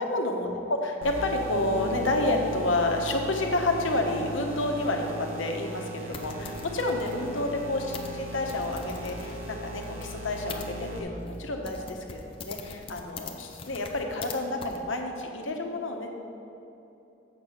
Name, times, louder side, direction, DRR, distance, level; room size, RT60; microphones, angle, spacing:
voice 1, 0.0-16.1, left 2 dB, 75° left, 3 dB, 1.0 m, -29 dB
sound 1, 1.0-11.0, equal, 85° right, 1.4 m, -40 dB
sound 2, 1.5-11.6, right 4 dB, 55° right, 0.5 m, -42 dB
sound 3, 6.1-10.7 11.3-11.4 11.6-14.3 14.6-14.8, left 4 dB, 25° left, 0.5 m, -43 dB
7.9 x 6.5 x 5.7 m, 2.9 s
head